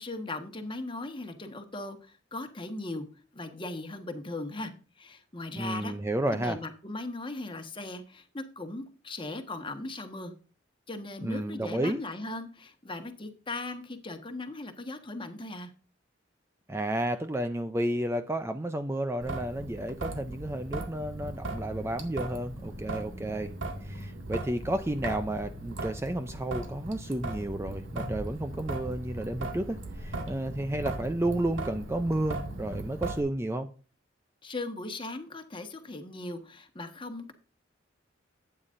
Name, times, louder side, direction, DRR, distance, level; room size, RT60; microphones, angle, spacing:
voice 1, 0.0-3.0 3.3-5.9 6.3-10.3 10.9-15.7 34.4-37.3, left 2 dB, 25° left, 1.4 m, -38 dB
voice 2, 5.5-6.6 11.2-12.0 16.7-23.5 23.8-33.7, right 1 dB, 15° right, 0.5 m, -32 dB
Traffic noise roadway noise / Drip / Trickle dribble, 19.2-33.2, right 2 dB, 80° right, 2.1 m, -38 dB
12.5 x 9.0 x 2.6 m
head